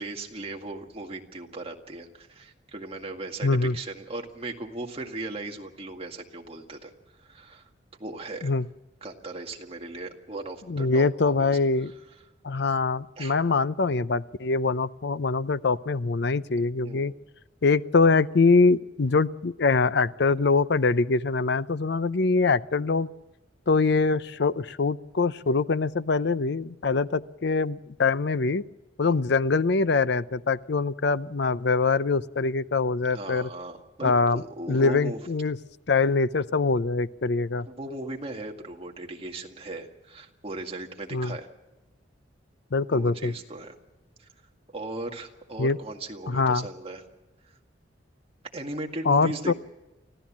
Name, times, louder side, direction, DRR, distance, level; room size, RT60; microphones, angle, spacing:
voice 1, 0.0-6.9 7.2-7.7 8.0-8.5 9.0-11.5 11.8-11.9 13.2-13.3 16.8-17.1 29.0-29.2 33.1-35.2 37.7-41.5 42.9-43.8 44.2-44.3 44.7-47.0 48.5-49.5, right 2 dB, 30° right, 2 dB, 2.0 m, -37 dB
voice 2, 3.4-3.8 8.4-8.7 10.7-11.9 12.4-17.1 17.6-23.1 23.7-28.6 29.0-33.5 34.0-34.4 34.7-35.6 35.9-37.7 41.1-41.4 42.7-43.3 45.6-45.8 46.3-46.7 49.1-49.5, left 4 dB, 65° left, 16 dB, 0.6 m, -23 dB
25.0 x 15.5 x 7.4 m, 1.1 s
head